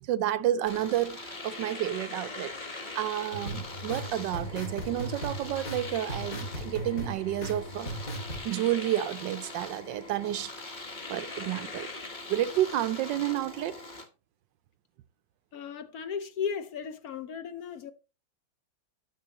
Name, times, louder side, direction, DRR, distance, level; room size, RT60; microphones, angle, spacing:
voice 1, 0.0-7.9 8.4-10.5 11.1-11.9 12.3-13.8, right 12 dB, 70° right, 1.2 m, -30 dB
Domestic sounds home sounds, 0.7-14.1, left 2 dB, 25° left, 1.4 m, -42 dB
sound 1, 3.3-8.4, right 1 dB, 40° left, 2.8 m, -37 dB
voice 2, 15.5-17.9, left 7 dB, 60° left, 1.0 m, -35 dB
13.5 x 7.3 x 3.0 m
omnidirectional pair, 2.2 m